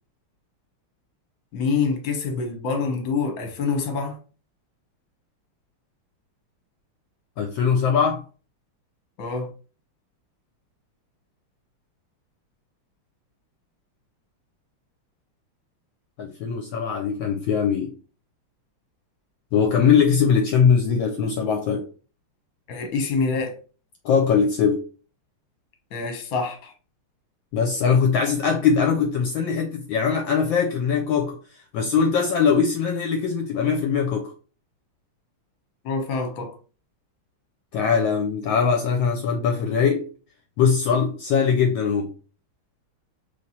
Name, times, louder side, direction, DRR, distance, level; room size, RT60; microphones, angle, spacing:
voice 1, 1.5-4.2 9.2-9.5 22.7-23.5 25.9-26.7 35.8-36.6, left 4 dB, 55° left, 1.1 m, -26 dB
voice 2, 7.4-8.2 16.2-17.9 19.5-21.8 24.0-24.8 27.5-31.4 31.7-34.3 37.7-40.1 40.6-42.1, left 6 dB, 75° left, 1.2 m, -21 dB
3.2 x 3.0 x 4.1 m
omnidirectional pair, 2.4 m